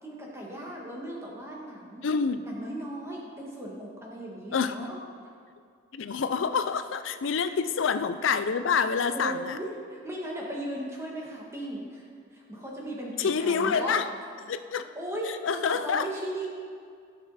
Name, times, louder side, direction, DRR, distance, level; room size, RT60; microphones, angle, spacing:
voice 1, 0.0-2.0 2.4-5.0 7.4-7.6 9.1-14.0 14.9-16.5, right 1 dB, 15° right, -3 dB, 1.7 m, -37 dB
voice 2, 2.0-2.4 4.5-4.9 5.9-9.6 13.2-14.1 14.4-14.9 15.3-16.1, left 6 dB, 80° left, 10 dB, 0.5 m, -27 dB
16.0 x 6.2 x 4.1 m, 2.2 s
head